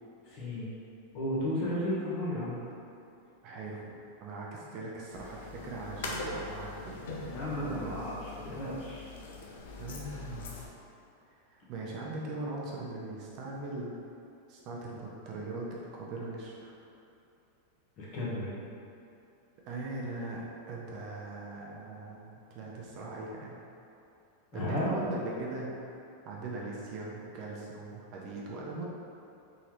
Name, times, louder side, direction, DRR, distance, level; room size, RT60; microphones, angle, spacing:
voice 1, 0.2-0.7 1.1-2.6 7.3-9.1 18.0-18.6 24.5-24.9, left 1 dB, 35° left, -7 dB, 1.0 m, -34 dB
voice 2, 3.4-3.9 4.2-8.0 9.8-10.6 11.5-14.0 14.5-16.8 19.6-23.6 24.5-25.7 26.2-28.8, right 2 dB, 35° right, -3 dB, 0.4 m, -40 dB
sound 1, 5.1-10.7, left 3 dB, 75° left, 0.5 m, -42 dB
3.7 x 3.1 x 2.9 m, 2.7 s
supercardioid pair, 170°, 0 cm